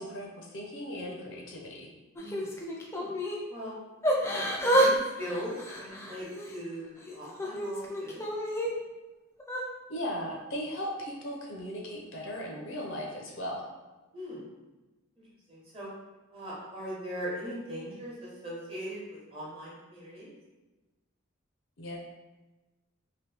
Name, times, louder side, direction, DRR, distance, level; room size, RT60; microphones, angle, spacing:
voice 1, 0.0-1.9 9.9-13.7 21.8-22.0, equal, 65° left, 0 dB, 0.6 m, -37 dB
voice 2, 2.1-2.6 2.9-3.1 3.5-3.7 4.2-8.2 14.1-14.5 15.2-15.9 16.3-20.3, equal, 25° right, -5 dB, 0.9 m, -40 dB
Yell / Crying sobbing, 2.2-3.4 4.0-4.9 5.2-6.6 7.1-8.7 9.4-9.6, equal, 15° left, 0.3 m, -29 dB
2.8 x 2.7 x 3.3 m, 1.1 s
head